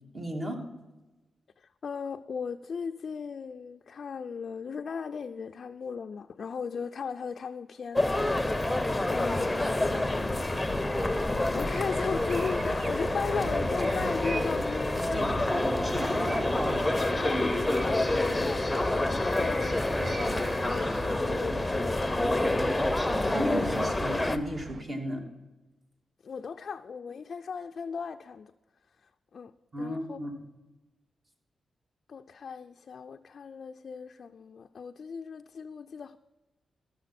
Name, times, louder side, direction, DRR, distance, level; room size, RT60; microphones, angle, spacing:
voice 1, 0.1-0.6 16.1-17.0 23.1-25.2 29.7-30.3, equal, 40° right, 2.6 m, -34 dB
voice 2, 1.6-10.8 11.2-15.7 16.7-22.7 26.2-28.5 29.0-30.2 32.1-36.2, left 6 dB, 65° left, 0.4 m, -37 dB
sound 1, 8.0-24.4, left 1 dB, 10° left, 0.8 m, -28 dB
sound 2, 11.7-24.8, right 5 dB, 60° right, 0.4 m, -43 dB
13.0 x 6.8 x 5.8 m
cardioid pair, 70°, 0 cm